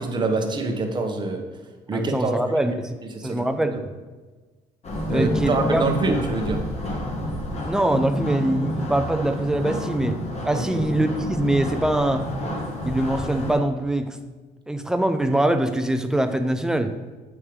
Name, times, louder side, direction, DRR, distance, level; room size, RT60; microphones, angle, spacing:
voice 1, 0.0-1.4 1.9-2.3 3.0-3.4 3.7-3.8 5.1-6.6 10.5-10.8, right 3 dB, 25° right, 3 dB, 0.9 m, -25 dB
voice 2, 1.9-2.9 3.2-3.7 5.1-5.8 7.7-10.2 10.4-12.3 12.8-14.2 14.7-16.9, right 1 dB, 5° right, 8 dB, 0.4 m, -23 dB
sound 1, 4.8-13.5, equal, 40° left, 1.3 m, -29 dB
7.2 x 3.2 x 4.7 m, 1.3 s
cardioid pair, 110°, 17 cm